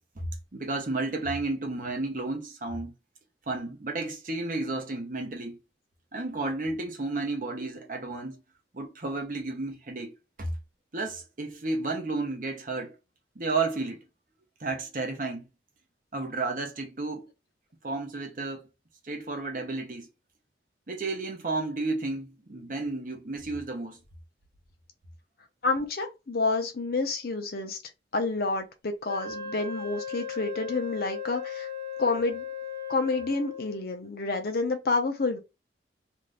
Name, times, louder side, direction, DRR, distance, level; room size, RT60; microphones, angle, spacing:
voice 1, 0.2-2.9 3.5-5.6 6.1-8.4 8.7-10.1 10.4-10.5 10.9-13.0 13.4-14.0 14.6-15.4 16.1-17.3 17.8-18.7 19.0-20.1 20.9-24.0, right 3 dB, 45° right, 0.8 m, -32 dB
voice 2, 25.6-27.8 28.1-31.7 32.0-32.4 32.9-35.4, left 3 dB, 55° left, 0.6 m, -29 dB
Wind instrument woodwind instrument, 29.1-33.8, left 6 dB, 25° right, 1.3 m, -37 dB
2.6 x 2.5 x 3.2 m
head